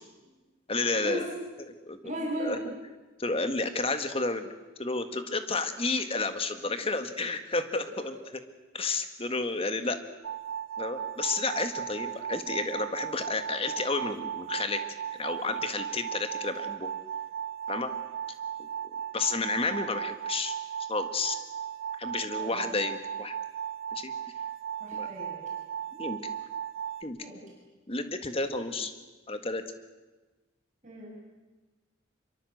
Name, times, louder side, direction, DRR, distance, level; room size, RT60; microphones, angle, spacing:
voice 1, 0.7-1.2 1.8-2.0 2.4-2.6 3.2-4.5 4.8-8.2 8.7-10.0 10.8-14.8 15.2-16.9 17.7-17.9 18.6-20.6 20.9-21.4 22.0-23.4 23.9-24.1 24.9-25.1 26.0-26.2 27.0-27.2 27.9-28.9 29.3-29.6, left 3 dB, 30° left, 8 dB, 1.8 m, -31 dB
voice 2, 2.0-2.6 8.0-8.1 22.3-22.6 24.8-25.4 27.2-27.4 28.5-28.7 30.8-31.1, equal, 40° right, -2 dB, 7.4 m, -36 dB
sound 1, 10.2-27.0, right 9 dB, 75° right, 2.0 m, -37 dB
25.0 x 23.5 x 8.0 m, 1.2 s
head